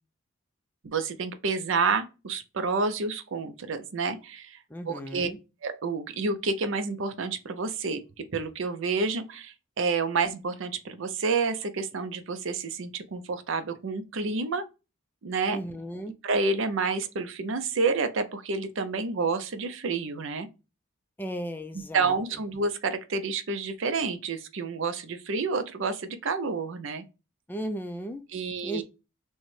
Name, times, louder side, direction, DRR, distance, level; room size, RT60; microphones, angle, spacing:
voice 1, 0.8-5.3 5.6-14.6 15.2-15.6 16.2-20.5 21.9-27.0 28.3-28.8, right 4 dB, 60° right, 0.5 m, -29 dB
voice 2, 4.7-5.4 15.5-16.1 21.2-22.1 27.5-28.2 28.6-28.8, equal, 10° left, 0.4 m, -35 dB
6.2 x 2.1 x 3.2 m
head